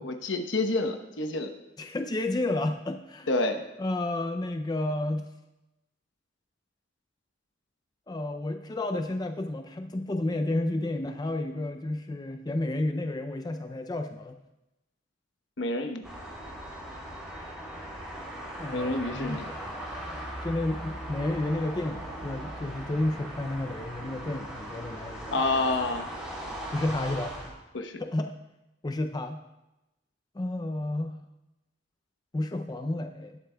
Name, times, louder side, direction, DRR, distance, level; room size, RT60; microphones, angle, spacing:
voice 1, 0.0-1.5 3.3-3.6 15.6-16.0 18.7-19.5 25.3-26.1 27.7-28.0, left 2 dB, 75° left, 6 dB, 1.0 m, -28 dB
voice 2, 1.8-3.3 3.8-5.3 8.1-14.4 18.6-19.4 20.4-25.4 26.7-27.3 28.0-28.3 28.8-29.4 30.3-31.2 32.3-33.4, left 2 dB, 20° left, 6 dB, 0.4 m, -31 dB
sound 1, 16.0-27.5, right 1 dB, 5° right, 3.0 m, -39 dB
18.5 x 8.1 x 2.3 m, 0.96 s
head